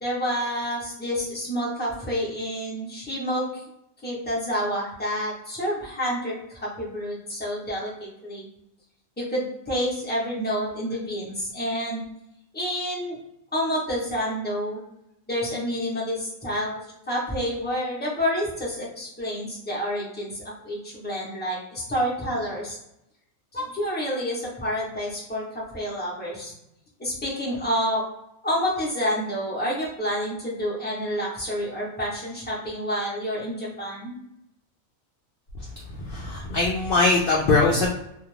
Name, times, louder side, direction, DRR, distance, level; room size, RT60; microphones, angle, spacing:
voice 1, 0.0-3.6 4.0-8.5 9.2-12.0 12.5-13.2 13.5-14.8 15.3-16.8 17.1-22.8 23.5-26.5 27.0-28.0 28.4-34.1, equal, 10° left, -5 dB, 0.7 m, -28 dB
voice 2, 35.6-37.9, left 3 dB, 65° left, -2 dB, 0.5 m, -22 dB
2.4 x 2.4 x 3.1 m, 0.82 s
omnidirectional pair, 1.4 m